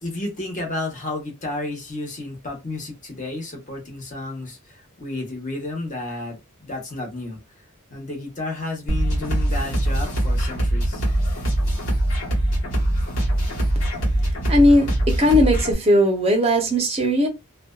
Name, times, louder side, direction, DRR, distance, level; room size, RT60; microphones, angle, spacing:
voice 1, 0.0-7.6 7.9-11.0, left 2 dB, 35° left, 0.9 m, -32 dB
sound 1, 8.9-15.7, right 1 dB, 55° left, 1.3 m, -22 dB
voice 2, 14.5-17.3, equal, 25° right, 0.6 m, -18 dB
2.6 x 2.2 x 2.2 m
head